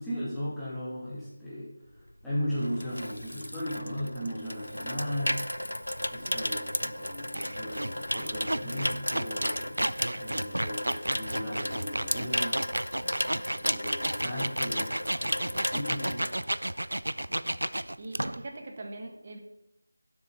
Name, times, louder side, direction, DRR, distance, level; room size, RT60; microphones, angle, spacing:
voice 1, 0.0-5.4 6.1-9.9 10.1-12.6 13.6-16.3, equal, 5° left, -12 dB, 2.7 m, -36 dB
Water tap faucet / Sink (filling or washing), 2.0-17.0 17.3-17.6, equal, 90° left, 0.5 m, -34 dB
sound 1, 7.3-18.5, right 1 dB, 80° right, 0.4 m, -32 dB
voice 2, 13.0-13.4 17.1-17.7 18.0-19.4, right 2 dB, 35° right, 3 dB, 1.6 m, -44 dB
12.5 x 7.6 x 4.0 m, 0.88 s
figure-of-eight pair, 165°, 0 cm